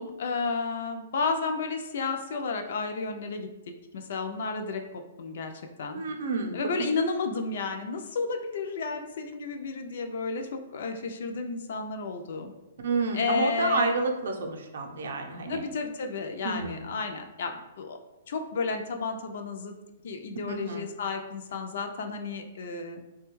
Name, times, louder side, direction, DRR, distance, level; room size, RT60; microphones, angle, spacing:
voice 1, 0.0-3.5 3.9-4.8 5.2-5.5 5.8-6.0 6.5-12.5 13.1-14.0 15.5-18.0 18.3-19.7 20.0-23.0, left 4 dB, 55° left, 5 dB, 0.3 m, -32 dB
voice 2, 5.9-6.9 12.8-15.6 16.4-16.8 20.5-20.9, right 3 dB, 70° right, 3 dB, 0.5 m, -30 dB
3.3 x 2.2 x 3.0 m, 1.0 s
hypercardioid pair, 170°, 0 cm